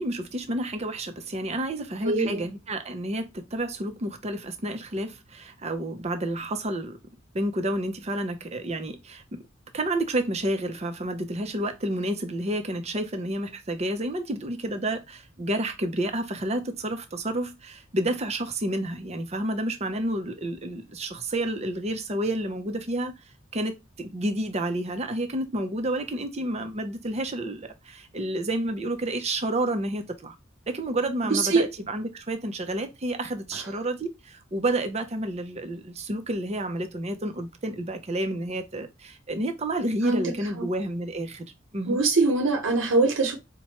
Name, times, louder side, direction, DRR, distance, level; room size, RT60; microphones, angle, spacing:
voice 1, 0.0-7.0 7.3-9.4 9.7-23.1 23.5-30.3 30.7-41.4 41.7-42.0, right 1 dB, 35° right, 0.6 m, -30 dB
voice 2, 2.0-2.4 31.2-31.7 40.0-40.3 40.6-40.7 41.9-43.4, right 3 dB, 70° right, 0.8 m, -23 dB
4.3 x 2.2 x 2.9 m
head